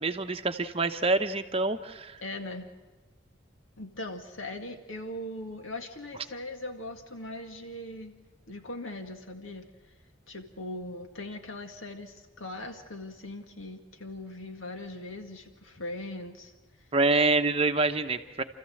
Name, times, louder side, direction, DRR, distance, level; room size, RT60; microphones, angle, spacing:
voice 1, 0.0-2.2 16.9-18.4, right 3 dB, 30° right, 7 dB, 0.9 m, -26 dB
voice 2, 2.2-2.7 3.8-8.1 8.5-9.6 10.3-16.5, left 1 dB, 85° left, 5 dB, 2.1 m, -40 dB
29.5 x 14.0 x 7.8 m, 1.2 s
head